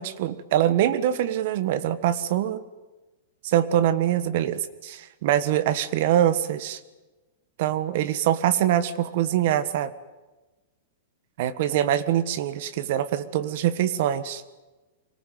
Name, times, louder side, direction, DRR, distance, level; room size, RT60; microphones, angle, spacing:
voice 1, 0.0-2.6 3.4-6.8 7.6-9.9 11.4-14.4, right 11 dB, 45° right, 14 dB, 1.5 m, -24 dB
24.5 x 18.5 x 9.5 m, 1.2 s
supercardioid pair, 175°, 0 cm